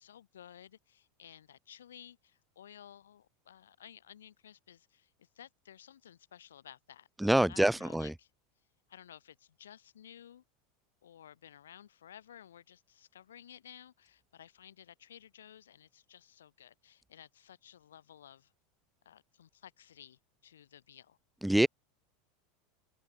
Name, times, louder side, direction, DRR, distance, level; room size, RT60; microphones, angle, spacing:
voice 1, 0.0-8.3 8.9-10.4 11.0-18.5 19.1-21.2, left 10 dB, 70° left, 5.3 m, -55 dB
voice 2, 7.2-8.1 21.4-21.7, right 1 dB, 5° right, 0.8 m, -26 dB
open air
figure-of-eight pair, 80°, 0 cm